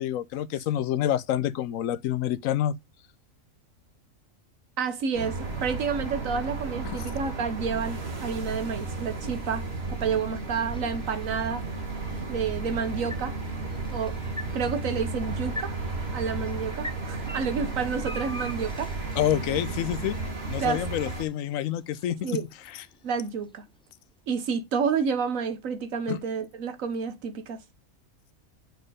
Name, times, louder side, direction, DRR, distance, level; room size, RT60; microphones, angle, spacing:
voice 1, 0.0-2.7 6.8-7.1 19.2-20.2 20.5-22.4 22.7-22.8 26.1-26.2, left 11 dB, 80° left, 1.0 m, -28 dB
voice 2, 4.8-11.6 12.3-13.4 13.9-14.2 14.5-15.7 16.1-18.9 20.6-20.8 22.2-22.4 23.0-23.6 24.3-27.6, right 6 dB, 85° right, 1.4 m, -30 dB
sound 1, 5.1-21.3, right 3 dB, 50° right, 1.9 m, -33 dB
sound 2, 8.1-24.2, left 1 dB, 5° left, 0.4 m, -46 dB
6.6 x 4.4 x 4.9 m
omnidirectional pair, 1.4 m